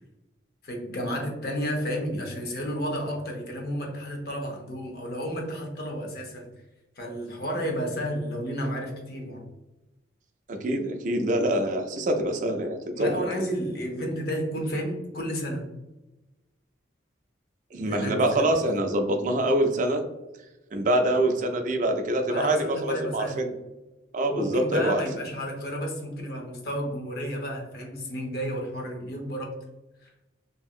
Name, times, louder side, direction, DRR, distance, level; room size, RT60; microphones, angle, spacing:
voice 1, 0.6-6.5 7.0-9.4 13.0-15.7 17.9-18.4 22.3-23.5 24.3-29.6 30.0-30.1, equal, 55° left, 1 dB, 0.7 m, -32 dB
voice 2, 10.5-13.4 17.7-20.0 20.7-23.5 24.1-25.0, right 1 dB, 40° right, 4 dB, 0.4 m, -25 dB
2.8 x 2.7 x 2.4 m, 1.0 s
head